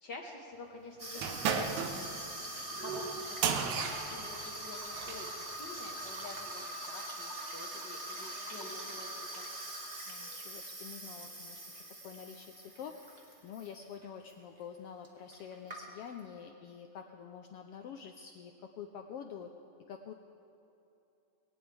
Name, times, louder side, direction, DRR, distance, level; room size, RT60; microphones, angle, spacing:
voice 1, 0.0-9.1 9.3-9.5, left 2 dB, 50° left, 1 dB, 1.4 m, -48 dB
Water tap faucet / Sink (filling or washing), 1.0-13.7 14.0-14.3 15.0-15.1 15.3-16.2, right 1 dB, 25° right, 0.9 m, -43 dB
sound 1, 1.2-5.3, right 6 dB, 80° right, 2.3 m, -35 dB
voice 2, 10.1-11.6 12.0-12.9 13.4-19.5 19.9-20.1, left 7 dB, 80° left, 4 dB, 1.3 m, -47 dB
21.0 x 18.0 x 3.5 m, 2.8 s
omnidirectional pair, 3.4 m